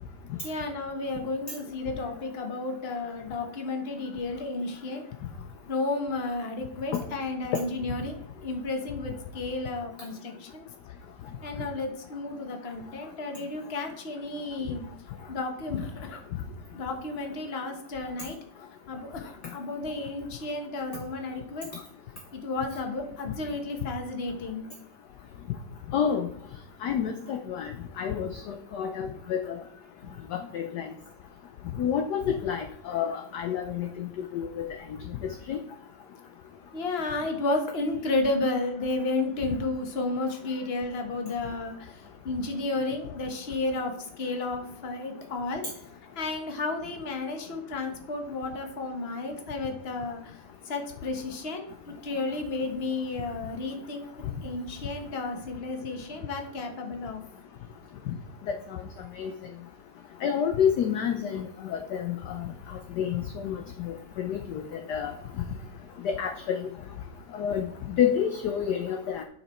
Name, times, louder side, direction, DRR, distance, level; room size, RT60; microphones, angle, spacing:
voice 1, 0.4-5.0 5.7-10.6 11.4-14.8 15.3-16.2 16.7-18.4 18.9-21.7 22.3-24.7 30.0-30.1 36.7-45.6 46.1-54.0 54.4-57.2, left 2 dB, 35° left, 4 dB, 1.1 m, -32 dB
voice 2, 25.9-26.3 26.8-29.5 30.3-30.8 31.8-34.7 35.5-35.6 59.2-59.3 60.2-62.1 63.0-63.6 63.8-64.6 64.9-65.1 66.0-66.6 67.3-67.6 68.0-69.2, left 8 dB, 70° left, 5 dB, 1.0 m, -28 dB
9.6 x 5.8 x 4.3 m, 0.69 s
omnidirectional pair, 2.4 m